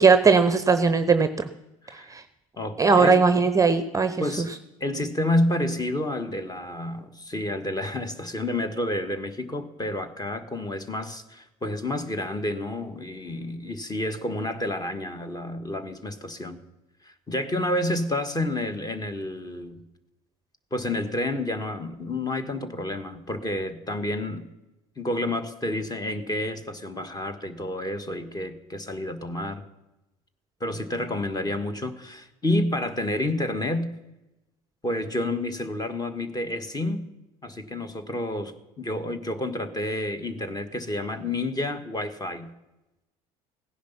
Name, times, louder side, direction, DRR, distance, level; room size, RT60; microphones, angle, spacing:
voice 1, 0.0-1.5 2.1-2.2 2.8-4.5, right 4 dB, 15° right, 11 dB, 0.7 m, -19 dB
voice 2, 1.8-2.1 2.6-3.2 4.2-4.5 4.8-16.6 17.0-19.8 20.7-24.5 25.0-29.6 30.6-33.9 34.8-37.0 37.4-42.5, left 1 dB, 20° left, 10 dB, 1.5 m, -29 dB
16.5 x 10.5 x 5.7 m, 0.97 s
figure-of-eight pair, 65°, 19 cm